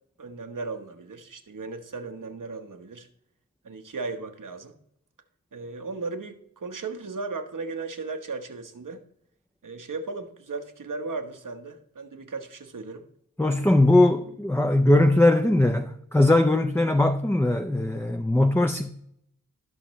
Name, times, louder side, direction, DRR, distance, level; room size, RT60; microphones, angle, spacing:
voice 1, 0.2-3.1 3.6-4.8 5.5-9.0 9.6-13.1, right 3 dB, 85° right, 1.2 m, -36 dB
voice 2, 13.4-18.9, left 1 dB, 10° left, 0.5 m, -20 dB
16.5 x 5.8 x 3.2 m
wide cardioid pair, 75°, 31 cm